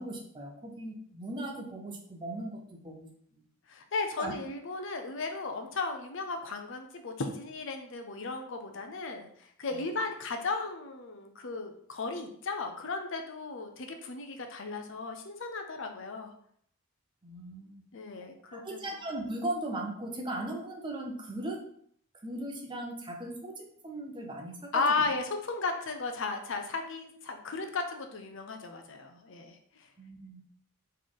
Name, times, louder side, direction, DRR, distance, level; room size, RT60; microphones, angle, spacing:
voice 1, 0.0-3.4 4.0-4.3 9.7-9.8 17.2-17.8 18.5-21.6 22.2-24.8 30.0-30.4, right 1 dB, 20° right, 1 dB, 0.7 m, -38 dB
voice 2, 3.7-16.3 17.9-18.8 24.7-29.9, left 3 dB, 60° left, 5 dB, 0.6 m, -35 dB
4.1 x 3.2 x 3.7 m, 0.64 s
head